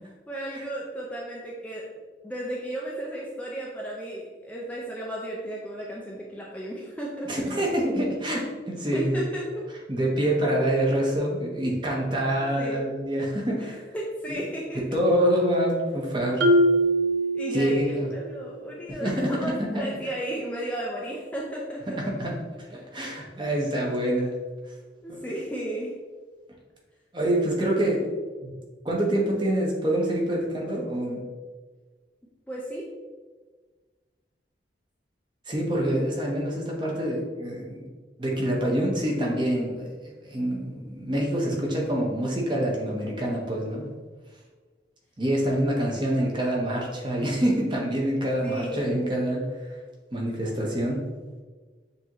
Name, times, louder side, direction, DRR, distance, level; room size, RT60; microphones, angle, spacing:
voice 1, 0.3-1.8 2.2-7.3 8.9-9.4 12.6-12.9 13.9-14.8 17.3-22.0 25.0-25.9 32.5-32.9 41.1-41.6 48.4-49.0, right 1 dB, 5° left, -4 dB, 0.4 m, -34 dB
voice 2, 7.3-9.2 9.9-13.8 14.3-14.4 14.9-16.5 17.5-18.1 18.9-19.8 22.0-24.3 25.1-25.2 27.1-28.0 28.4-28.6 28.8-31.2 35.5-37.8 38.2-39.9 40.2-43.9 45.2-49.4 49.7-49.8 50.1-51.0, right 1 dB, 25° right, -2 dB, 0.8 m, -26 dB
Marimba xylophone, 16.4-18.2, right 1 dB, 85° right, 0.5 m, -22 dB
6.8 x 2.7 x 2.9 m, 1.4 s
head